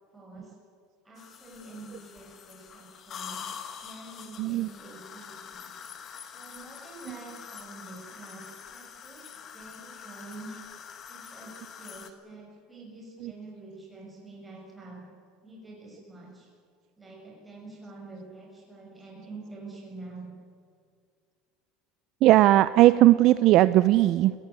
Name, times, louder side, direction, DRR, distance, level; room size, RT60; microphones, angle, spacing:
voice 1, 0.1-0.6 1.0-3.4 3.8-5.7 6.3-10.6 11.1-15.0 15.4-16.5 17.0-20.3, right 2 dB, 10° right, -2 dB, 6.2 m, -46 dB
sound 1, 1.2-12.1, left 7 dB, 30° left, 1.6 m, -45 dB
voice 2, 4.4-4.7 7.1-7.2 13.2-13.3 22.2-24.3, right 15 dB, 45° right, 15 dB, 0.5 m, -19 dB
21.5 x 17.0 x 9.8 m, 2.2 s
cardioid pair, 165°, 0 cm